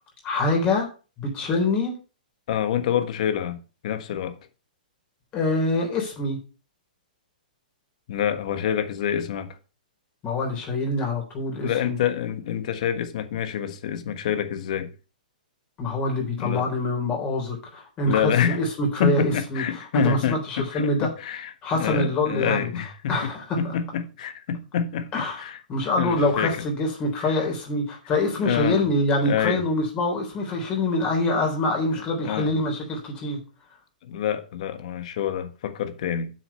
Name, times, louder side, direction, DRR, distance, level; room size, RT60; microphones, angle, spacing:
voice 1, 0.2-0.9 1.2-2.0 5.3-6.4 10.2-12.0 15.8-21.1 21.6-22.7 23.1-23.7 25.1-33.4, left 2 dB, 20° left, 3.5 m, -25 dB
voice 2, 2.5-4.4 8.1-9.6 11.6-14.9 16.4-16.6 18.1-18.6 19.0-23.3 23.6-25.6 26.0-26.6 27.2-27.3 28.4-28.8 29.2-29.6 32.2-32.5 34.0-36.3, left 9 dB, 50° left, 1.4 m, -27 dB
7.4 x 6.3 x 5.6 m
hypercardioid pair, 155°, 5 cm